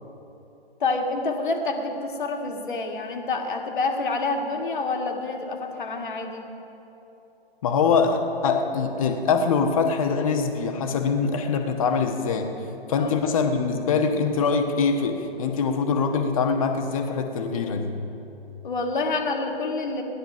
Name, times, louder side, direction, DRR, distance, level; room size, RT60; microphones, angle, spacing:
voice 1, 0.8-6.5 13.0-13.2 18.6-20.0, left 3 dB, 55° left, 3 dB, 1.9 m, -28 dB
voice 2, 7.6-12.5 12.9-18.0, left 5 dB, 35° left, 5 dB, 1.3 m, -23 dB
17.5 x 12.0 x 6.0 m, 3.0 s
figure-of-eight pair, 130°, 31 cm